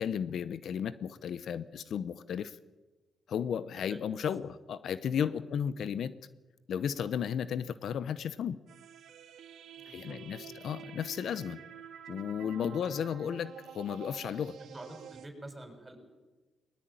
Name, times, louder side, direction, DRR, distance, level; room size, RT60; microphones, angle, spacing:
voice 1, 0.0-2.6 3.3-6.1 6.7-8.6 9.9-11.6 12.1-14.6, left 8 dB, 70° left, 15 dB, 0.8 m, -34 dB
sound 1, 8.7-15.3, right 9 dB, 75° right, 1.8 m, -49 dB
voice 2, 9.7-10.5 12.5-12.8 14.6-16.0, right 1 dB, 20° right, 6 dB, 6.7 m, -48 dB
20.0 x 20.0 x 9.0 m, 1.2 s
cardioid pair, 70°, 0 cm